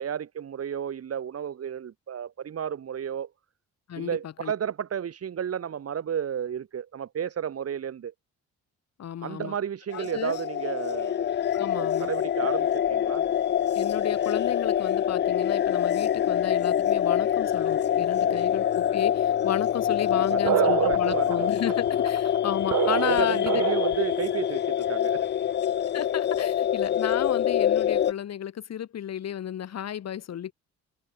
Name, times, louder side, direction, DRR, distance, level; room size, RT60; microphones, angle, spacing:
voice 1, 0.0-3.3 4.0-8.1 9.2-11.3 11.7-13.2 18.2-18.4 20.1-21.5 23.1-25.3, right 8 dB, 55° right, 2.9 m, -32 dB
voice 2, 3.9-4.5 9.0-9.5 9.9-10.4 11.5-12.1 13.7-23.6 25.9-30.5, left 10 dB, 60° left, 1.9 m, -33 dB
sound 1, 9.9-28.1, left 10 dB, 35° left, 0.4 m, -25 dB
sound 2, 20.4-24.2, right 13 dB, 80° right, 2.7 m, -27 dB
cardioid pair, 90°, 30 cm